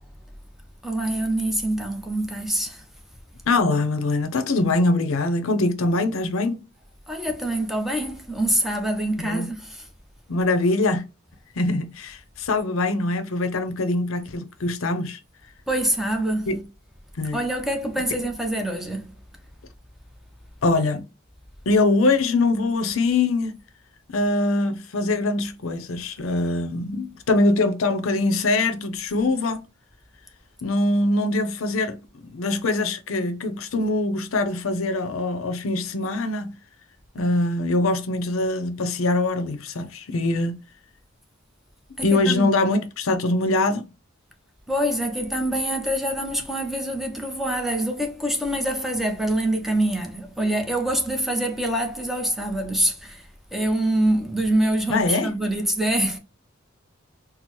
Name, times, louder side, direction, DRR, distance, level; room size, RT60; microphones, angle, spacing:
voice 1, 0.8-2.8 7.1-9.8 15.7-16.5 17.3-19.1 42.0-42.5 44.7-53.2 53.5-56.2, right 1 dB, ahead, 0.6 m, -25 dB
voice 2, 3.5-6.6 9.2-9.5 10.3-11.0 11.5-15.2 16.5-16.7 17.1-17.4 20.6-21.1 21.7-23.5 24.1-29.7 30.6-36.6 37.1-40.6 42.0-43.9 54.9-55.3, left 2 dB, 75° left, 0.6 m, -23 dB
4.3 x 2.0 x 2.9 m
head